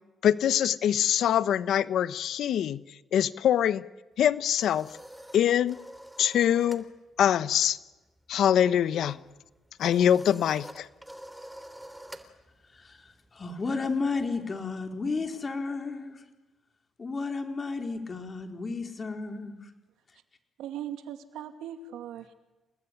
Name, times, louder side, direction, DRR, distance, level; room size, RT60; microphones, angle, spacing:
voice 1, 0.2-2.8 3.1-3.8 4.2-4.9 5.3-5.8 6.2-6.8 7.2-7.8 8.3-9.2 9.8-10.9, left 10 dB, 70° left, 1.1 m, -24 dB
sound 1, 4.2-6.9 7.2-7.5 7.7-14.4, right 1 dB, 5° right, 3.2 m, -48 dB
voice 2, 12.7-16.2 17.0-19.7, left 4 dB, 35° left, 4.3 m, -33 dB
voice 3, 20.6-22.3, right 10 dB, 90° right, 2.4 m, -39 dB
29.5 x 19.5 x 10.0 m
cardioid pair, 90°, 0 cm